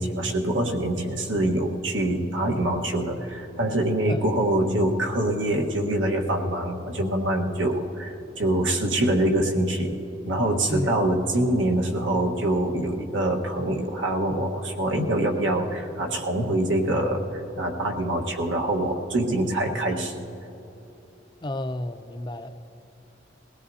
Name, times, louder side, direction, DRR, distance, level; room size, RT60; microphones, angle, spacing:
voice 1, 0.0-9.9 10.2-20.3, right 1 dB, 85° right, 1 dB, 1.4 m, -25 dB
voice 2, 21.4-22.7, left 1 dB, 25° left, 8 dB, 0.5 m, -31 dB
21.0 x 17.0 x 2.8 m, 3.0 s
head